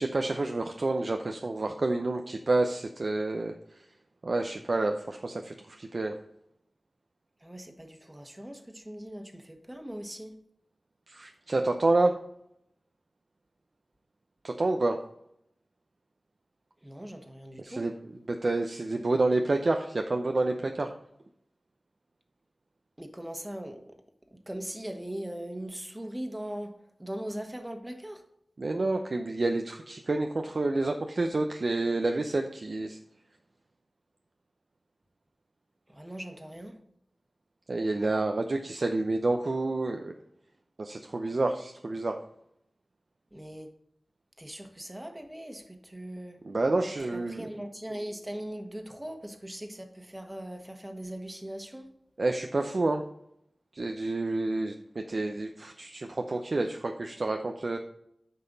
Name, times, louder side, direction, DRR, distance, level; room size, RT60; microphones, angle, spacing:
voice 1, 0.0-3.5 4.2-6.1 11.1-12.1 14.4-15.0 17.6-17.9 18.3-20.9 28.6-33.0 37.7-40.1 40.8-42.2 46.4-47.5 52.2-53.0 53.8-57.8, right 2 dB, 60° right, 4 dB, 0.6 m, -29 dB
voice 2, 7.4-10.3 16.8-17.9 23.0-24.0 24.3-28.2 35.9-36.8 43.3-43.7 44.4-46.4 47.1-51.9, right 1 dB, 15° right, 5 dB, 1.4 m, -40 dB
9.7 x 5.6 x 4.0 m, 0.76 s
wide cardioid pair, 60°, 0 cm